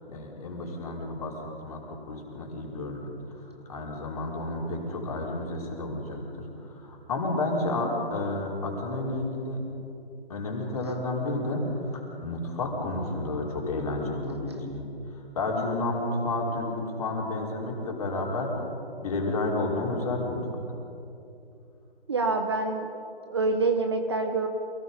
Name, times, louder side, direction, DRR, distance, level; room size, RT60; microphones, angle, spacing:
voice 1, 0.1-1.3 1.6-9.6 10.3-14.8 15.1-18.7 19.0-20.4, left 2 dB, 35° left, -1 dB, 4.5 m, -31 dB
voice 2, 22.1-22.9 23.3-24.5, right 3 dB, 25° right, 5 dB, 0.8 m, -26 dB
28.0 x 18.0 x 5.5 m, 2.7 s
figure-of-eight pair, 165°, 32 cm